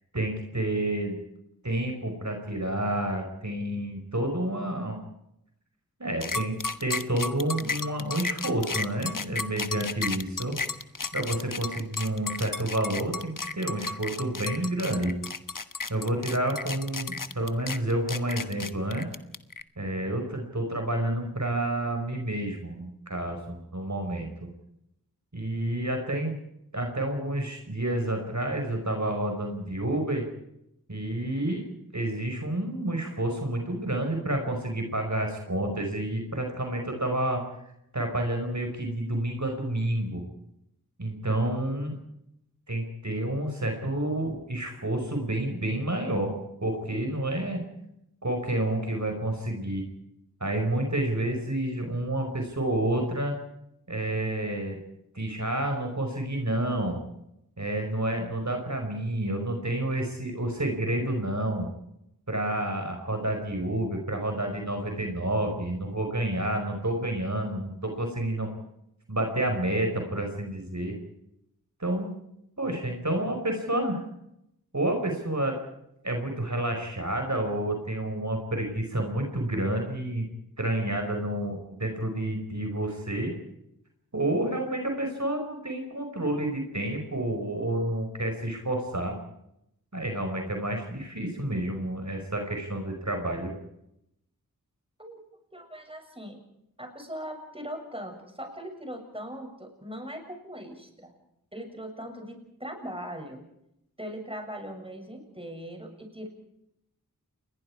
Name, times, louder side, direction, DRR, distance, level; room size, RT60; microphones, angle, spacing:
voice 1, 0.1-1.2 1.6-5.0 6.0-10.6 11.1-15.1 15.9-19.1 19.8-24.5 25.3-26.4 26.7-30.2 30.9-31.6 31.9-37.4 37.9-40.2 41.0-42.0 42.7-46.4 46.6-47.6 48.2-49.9 50.4-53.3 53.9-54.8 55.1-57.0 57.6-61.7 62.3-68.5 69.1-70.9 71.8-72.1 72.6-74.0 74.7-75.6 76.0-80.3 80.6-83.3 84.1-89.2 89.9-93.5, right 1 dB, 55° right, 3 dB, 5.1 m, -29 dB
sound 1, 6.2-19.6, left 4 dB, 65° left, 1.2 m, -33 dB
voice 2, 95.5-96.4 96.8-101.1 101.5-103.4 104.0-106.3, equal, 15° right, 4 dB, 7.1 m, -40 dB
29.5 x 21.5 x 4.8 m, 0.80 s
wide cardioid pair, 50°, 35 cm